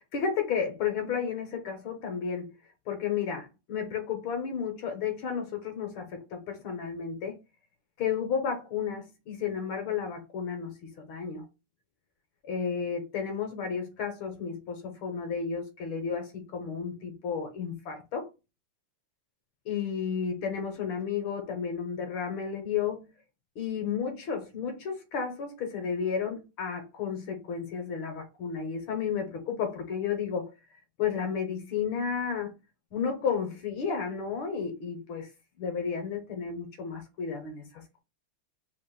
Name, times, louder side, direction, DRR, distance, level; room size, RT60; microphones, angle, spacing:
voice 1, 0.1-2.5 2.9-7.3 8.0-11.5 12.4-18.3 19.6-23.0 23.6-30.5 31.0-32.5 32.9-35.3 35.6-37.6, left 6 dB, 70° left, 1.6 m, -32 dB
3.7 x 2.4 x 3.8 m
omnidirectional pair, 2.4 m